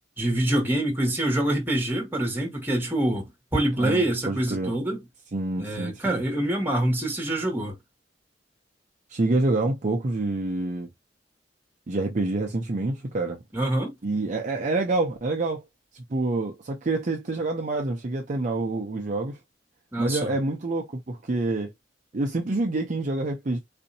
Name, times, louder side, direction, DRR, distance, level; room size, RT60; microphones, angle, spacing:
voice 1, 0.2-5.0 5.6-7.8 13.5-13.9 19.9-20.4, right 1 dB, 10° right, 1.4 m, -25 dB
voice 2, 3.8-4.7 5.3-6.2 9.1-10.9 11.9-13.4 14.0-15.6 15.9-19.4 20.0-21.7 22.1-23.6, right 2 dB, 45° right, 0.6 m, -27 dB
4.2 x 2.6 x 2.7 m
head